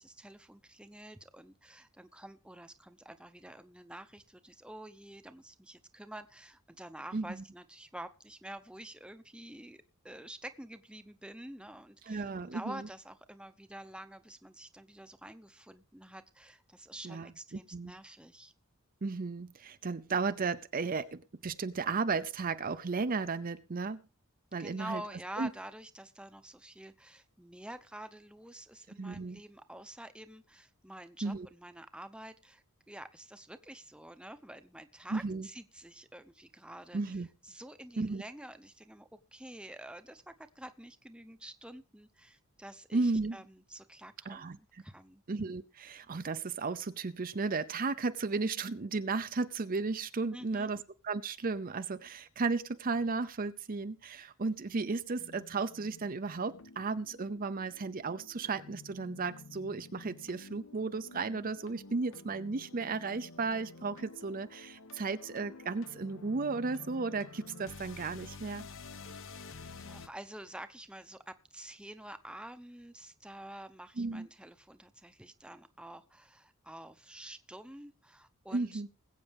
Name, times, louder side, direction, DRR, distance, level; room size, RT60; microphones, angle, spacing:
voice 1, 0.0-18.5 24.6-45.2 50.3-50.7 69.2-69.5 69.8-78.8, right 1 dB, 5° right, 10 dB, 0.7 m, -48 dB
voice 2, 12.1-12.8 17.0-17.3 17.7-17.9 19.0-24.0 24.5-25.0 25.4-25.5 29.0-29.4 31.2-31.5 35.1-35.5 36.9-37.3 38.0-38.2 42.9-43.4 44.3-44.6 45.3-50.8 51.0-68.6 74.0-74.3 78.5-78.9, right 4 dB, 40° right, 12 dB, 0.6 m, -34 dB
sound 1, 55.2-70.1, left 3 dB, 65° left, 0.9 m, -50 dB
21.0 x 8.3 x 3.5 m, 0.33 s
head